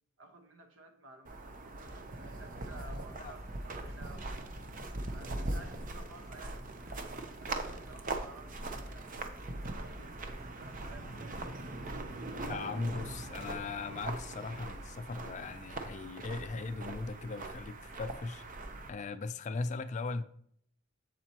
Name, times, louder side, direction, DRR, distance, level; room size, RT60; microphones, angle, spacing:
voice 1, 0.2-4.3 4.9-11.5, right 2 dB, 65° right, 1.2 m, -54 dB
sound 1, 1.2-18.9, right 2 dB, 40° right, 0.7 m, -41 dB
sound 2, 1.7-13.3, equal, 15° right, 1.9 m, -56 dB
voice 2, 12.5-18.4 18.9-20.2, left 3 dB, 35° left, 0.4 m, -38 dB
7.6 x 7.4 x 2.9 m
head